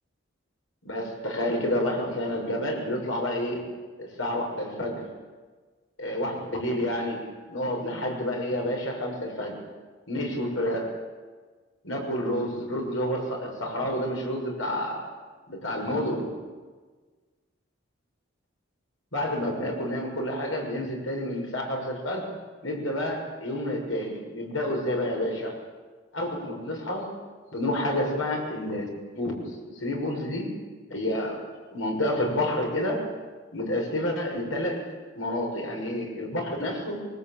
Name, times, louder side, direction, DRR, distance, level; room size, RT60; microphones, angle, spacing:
voice 1, 0.8-3.6 4.0-5.1 6.0-9.6 10.1-10.9 11.8-15.1 15.5-16.3 19.1-22.3 22.6-25.6 26.1-27.1 27.5-28.9 29.1-30.5 30.9-33.1 33.5-34.8 35.2-37.1, left 1 dB, 80° left, 1 dB, 6.4 m, -29 dB
24.0 x 23.5 x 9.0 m, 1.4 s
head